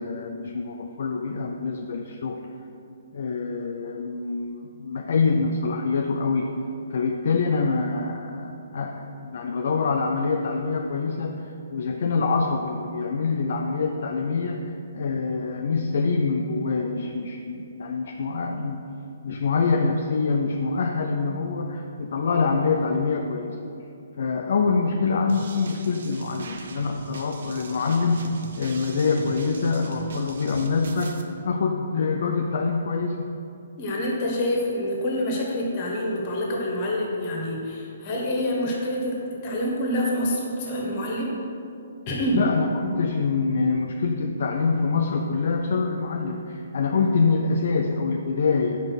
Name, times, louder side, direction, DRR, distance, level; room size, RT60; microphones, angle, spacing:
voice 1, 0.0-2.4 3.1-6.5 6.9-11.4 11.7-18.8 19.2-23.6 24.2-33.3 42.4-48.8, left 4 dB, 60° left, 3 dB, 0.4 m, -25 dB
sound 1, 25.3-31.2, right 3 dB, 60° right, 0.7 m, -40 dB
voice 2, 33.8-39.1 39.4-41.3 42.1-42.4, left 1 dB, 40° left, -2 dB, 1.7 m, -26 dB
5.6 x 4.9 x 6.2 m, 2.7 s
figure-of-eight pair, 130°, 0 cm